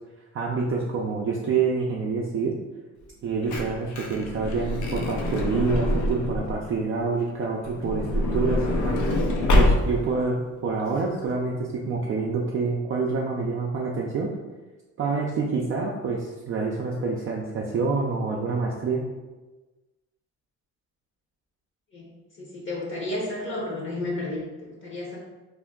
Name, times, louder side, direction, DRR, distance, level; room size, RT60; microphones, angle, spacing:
voice 1, 0.3-2.5 3.2-9.0 9.5-14.3 15.0-19.0, right 4 dB, 45° right, -2 dB, 0.4 m, -27 dB
Truck / Door, 3.1-6.6 7.6-10.2 10.9-11.0 11.1-11.3, left 1 dB, 70° left, 0.6 m, -25 dB
voice 2, 21.9-25.2, left 2 dB, 40° left, -3 dB, 0.8 m, -32 dB
2.6 x 2.1 x 3.6 m, 1.2 s
cardioid pair, 90°, 30 cm